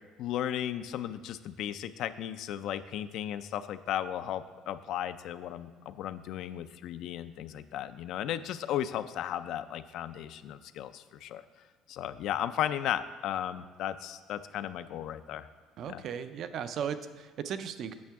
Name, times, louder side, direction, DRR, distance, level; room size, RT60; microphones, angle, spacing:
voice 1, 0.2-11.4 11.9-15.5 15.9-16.0, left 11 dB, 65° left, 12 dB, 0.3 m, -35 dB
voice 2, 15.8-17.9, right 8 dB, 50° right, 12 dB, 0.4 m, -36 dB
8.6 x 6.6 x 3.5 m, 1.5 s
cardioid pair, 125°, 0 cm